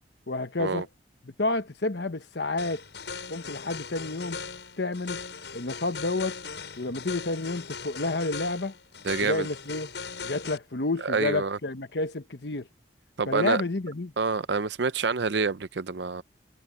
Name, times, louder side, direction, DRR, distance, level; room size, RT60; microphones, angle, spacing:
voice 1, 0.3-0.9 1.4-2.8 3.3-4.4 4.8-5.2 5.5-6.4 6.8-8.7 9.2-9.9 10.2-12.7 13.3-14.1, left 2 dB, 70° left, 1.1 m, -30 dB
sound 1, 2.6-10.6, left 5 dB, 90° left, 7.2 m, -39 dB
voice 2, 9.0-9.5 11.0-11.6 13.2-13.6 14.2-16.2, right 4 dB, 80° right, 0.7 m, -27 dB
head